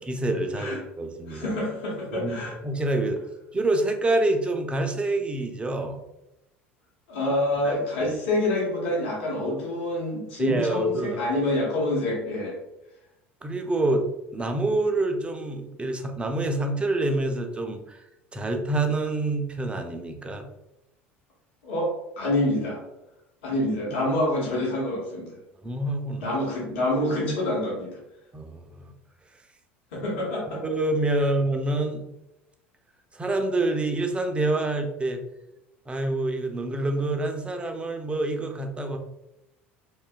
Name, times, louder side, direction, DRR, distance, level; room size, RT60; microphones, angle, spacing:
voice 1, 0.1-1.5 2.2-3.2 3.5-6.0 7.6-8.1 10.4-11.2 13.4-18.0 18.3-20.5 24.0-24.1 25.6-26.3 28.3-28.8 30.5-32.1 33.1-35.2 35.9-39.0, right 2 dB, 15° right, 4 dB, 0.4 m, -27 dB
voice 2, 1.3-2.6 7.1-12.6 21.6-22.8 23.4-25.4 26.2-28.0 29.9-30.6 31.2-31.3, left 1 dB, 70° left, -4 dB, 0.9 m, -27 dB
2.6 x 2.3 x 2.2 m, 0.89 s
figure-of-eight pair, 70°, 7 cm